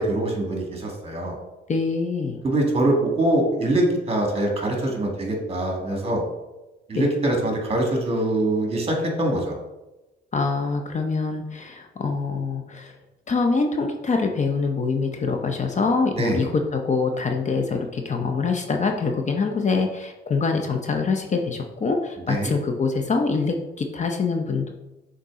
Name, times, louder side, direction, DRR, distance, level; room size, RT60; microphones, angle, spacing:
voice 1, 0.0-1.4 2.4-6.2 6.9-9.6 16.1-16.4 22.3-22.5, right 1 dB, 30° right, 1 dB, 1.8 m, -23 dB
voice 2, 1.7-2.4 6.9-7.1 10.3-12.9 13.3-24.7, left 4 dB, 35° left, 4 dB, 0.7 m, -24 dB
6.7 x 4.0 x 3.7 m, 1.0 s
cardioid pair, 90°, 20 cm